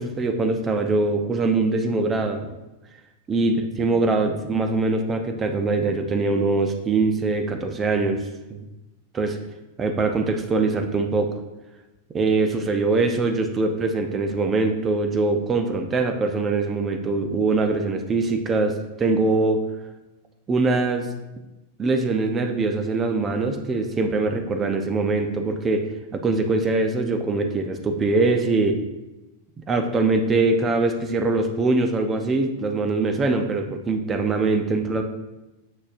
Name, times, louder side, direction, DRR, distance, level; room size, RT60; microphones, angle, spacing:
voice 1, 0.0-2.5 3.3-8.2 8.5-8.6 9.1-9.4 9.8-11.3 12.1-19.6 20.5-21.1 21.8-25.9 26.1-28.8 29.7-35.0, right 3 dB, 25° right, 5 dB, 0.8 m, -23 dB
7.3 x 6.3 x 2.6 m, 1.0 s
figure-of-eight pair, 95°, 0 cm